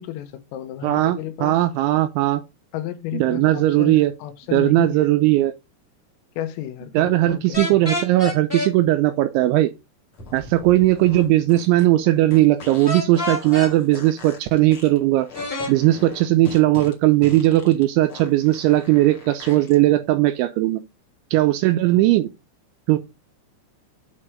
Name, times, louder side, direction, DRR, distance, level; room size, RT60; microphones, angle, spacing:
voice 1, 0.0-1.6 2.7-5.1 6.4-7.8, left 12 dB, 85° left, 3.7 m, -33 dB
voice 2, 0.8-2.4 3.1-4.1 4.5-5.5 6.9-9.7 10.3-15.3 15.7-20.8 21.3-22.3 22.9-23.0, right 16 dB, 85° right, 2.7 m, -18 dB
sound 1, 7.5-8.7 12.9-13.7 15.3-15.7, left 1 dB, 20° left, 1.5 m, -27 dB
sound 2, 10.1-19.8, left 4 dB, 40° left, 2.0 m, -41 dB
8.6 x 4.4 x 5.0 m
omnidirectional pair, 5.9 m